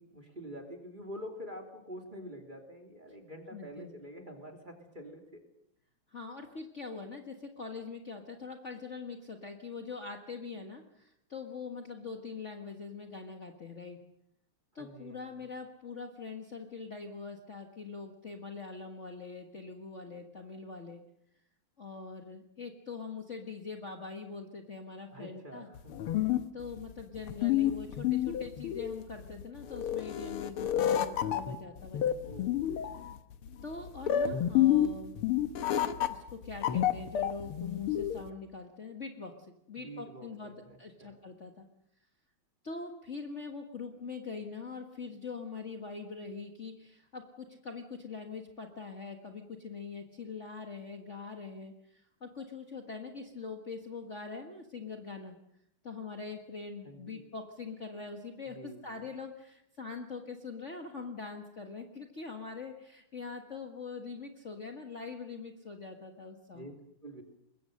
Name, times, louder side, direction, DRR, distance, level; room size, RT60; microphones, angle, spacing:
voice 1, 0.0-5.4 14.8-15.4 25.1-26.2 32.2-33.1 39.7-41.2 56.8-57.3 58.4-59.0 66.5-66.7 67.0-67.2, equal, 20° right, 3 dB, 3.0 m, -47 dB
voice 2, 3.5-3.9 6.1-14.0 14.8-21.0 21.8-25.7 26.5-32.5 33.0-33.1 33.6-35.2 36.1-40.5 40.8-41.7 42.6-55.4 55.8-66.8, left 4 dB, 35° left, 3 dB, 1.7 m, -43 dB
sound 1, 25.8-38.3, left 11 dB, 90° left, 2.0 m, -30 dB
24.5 x 21.5 x 6.6 m, 0.80 s
omnidirectional pair, 2.4 m